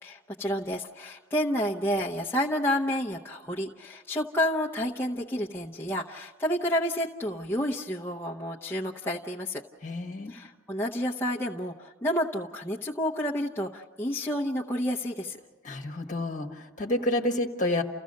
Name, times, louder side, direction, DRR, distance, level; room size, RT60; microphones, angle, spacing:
voice 1, 0.0-9.6 10.3-15.4, equal, 10° left, -4 dB, 0.8 m, -30 dB
voice 2, 9.8-10.3 15.6-17.8, left 1 dB, 40° left, 4 dB, 1.5 m, -29 dB
29.5 x 15.5 x 6.5 m, 1.4 s
head